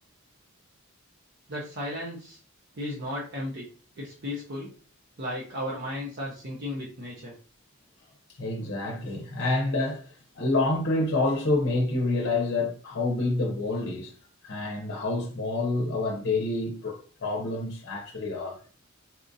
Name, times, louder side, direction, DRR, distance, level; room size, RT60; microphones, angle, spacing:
voice 1, 1.5-2.4 2.8-3.7 4.0-4.7 5.2-7.3, left 1 dB, 50° right, 0.7 m, -34 dB
voice 2, 8.4-10.0 10.3-14.1 14.4-18.6, left 2 dB, 50° left, 0.7 m, -27 dB
4.2 x 2.5 x 2.6 m
head